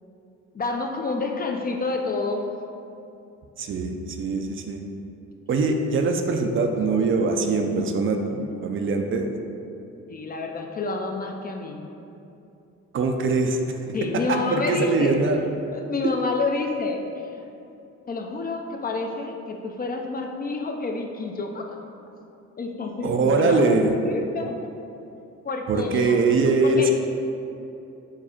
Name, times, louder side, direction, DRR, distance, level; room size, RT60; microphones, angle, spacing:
voice 1, 0.5-2.5 10.1-11.9 13.9-15.2 15.7-17.4 18.1-21.8 22.6-24.6 25.4-26.2 26.6-26.9, left 3 dB, 30° left, 3 dB, 0.4 m, -29 dB
voice 2, 3.6-4.8 5.5-9.3 12.9-13.8 14.3-15.4 23.0-24.0 25.7-26.9, right 3 dB, 45° right, 4 dB, 0.4 m, -22 dB
4.7 x 2.3 x 4.3 m, 2.7 s
cardioid pair, 90°, 30 cm